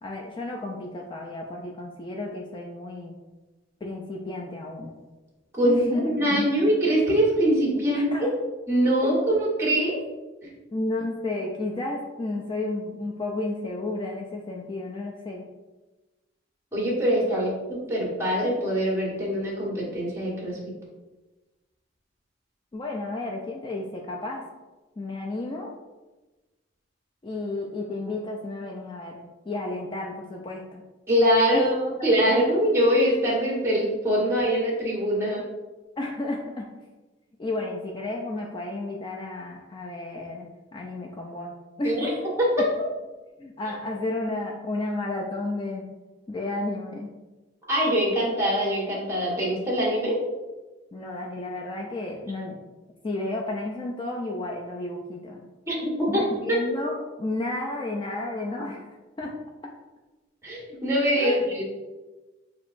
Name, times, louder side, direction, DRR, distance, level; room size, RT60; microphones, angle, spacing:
voice 1, 0.0-3.2 3.8-4.9 5.6-6.5 7.9-8.3 9.0-9.1 10.7-15.4 17.3-17.4 22.7-24.4 25.0-25.7 27.2-30.8 31.5-31.7 32.0-32.1 36.0-36.7 37.4-40.5 40.7-42.2 43.4-45.8 46.3-47.1 50.9-52.6 53.0-55.4 56.1-58.9 59.2-59.3 61.2-61.4, left 2 dB, 25° left, 0 dB, 0.4 m, -32 dB
voice 2, 5.5-8.1 8.7-10.0 10.4-10.5 16.7-20.6 31.1-35.4 41.8-42.1 42.4-42.9 47.7-50.2 55.7-56.6 60.4-61.6, equal, 15° right, -4 dB, 1.4 m, -23 dB
6.2 x 2.9 x 2.5 m, 1.2 s
head